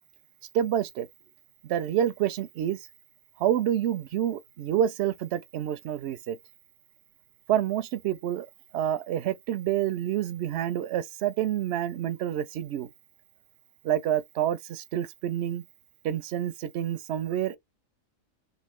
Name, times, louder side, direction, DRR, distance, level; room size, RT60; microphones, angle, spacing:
voice 1, 0.5-1.1 1.6-2.8 3.4-6.4 7.5-8.5 8.7-12.9 13.8-15.6 16.0-17.6, right 11 dB, 65° right, 0.7 m, -28 dB
3.5 x 2.6 x 3.1 m
omnidirectional pair, 1.4 m